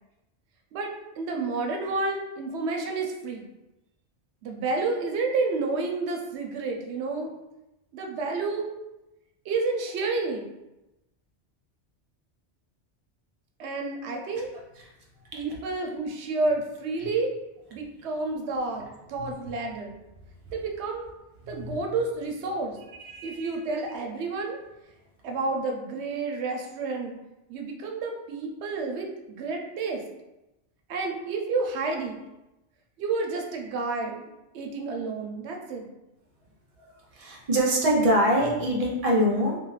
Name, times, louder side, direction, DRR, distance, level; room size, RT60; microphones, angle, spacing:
voice 1, 0.7-3.4 4.4-7.3 7.9-8.7 9.5-10.5 13.6-14.5 15.3-17.3 17.7-20.0 20.5-21.0 21.5-22.8 23.2-24.6 25.2-27.2 27.5-30.0 30.9-32.2 33.0-34.3 34.5-35.9, right 3 dB, 75° right, 2 dB, 0.8 m, -30 dB
voice 2, 21.4-21.8 23.0-23.5 37.1-39.6, equal, 40° right, -2 dB, 0.5 m, -24 dB
2.5 x 2.4 x 3.1 m, 0.96 s
omnidirectional pair, 1.2 m